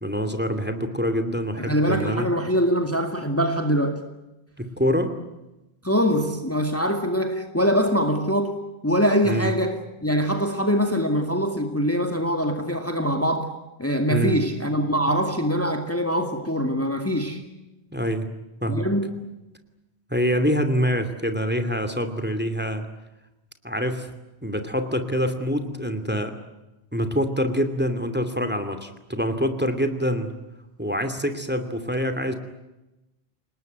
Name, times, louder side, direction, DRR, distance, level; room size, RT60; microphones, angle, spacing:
voice 1, 0.0-2.3 4.6-5.1 9.2-9.5 14.1-14.4 17.9-18.3 18.6-18.9 20.1-22.9 23.6-24.1 24.4-26.4 26.9-30.3 30.8-32.3, equal, 10° right, 2.6 m, -25 dB
voice 2, 1.6-4.0 5.8-13.5 13.8-17.4 18.7-19.3, equal, 15° left, 2.1 m, -23 dB
29.5 x 19.5 x 9.4 m
omnidirectional pair, 1.1 m